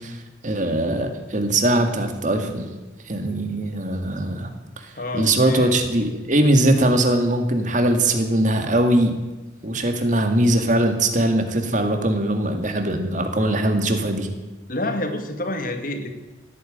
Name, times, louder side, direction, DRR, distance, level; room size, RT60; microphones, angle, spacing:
voice 1, 0.0-2.7 3.1-4.5 4.8-9.1 9.6-14.3, right 1 dB, 40° right, 5 dB, 2.1 m, -21 dB
voice 2, 5.0-5.7 14.7-16.1, left 1 dB, 50° left, 6 dB, 1.9 m, -28 dB
17.0 x 9.1 x 8.9 m, 1.1 s
head